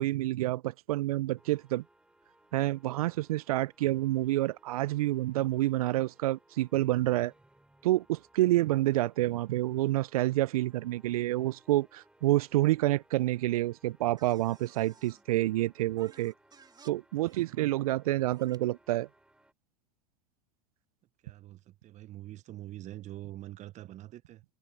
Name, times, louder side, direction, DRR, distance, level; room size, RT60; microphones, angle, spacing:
voice 1, 0.0-1.8 2.5-7.3 7.8-16.3 16.8-19.1, right 16 dB, 70° right, 0.6 m, -28 dB
sound 1, 1.4-19.5, right 1 dB, 5° right, 5.8 m, -65 dB
sound 2, 14.2-15.2 16.0-16.9 17.2-17.5 18.3-18.6, right 6 dB, 20° right, 3.5 m, -57 dB
voice 2, 21.2-24.4, right 14 dB, 40° right, 1.1 m, -45 dB
hypercardioid pair, 90°, 19 cm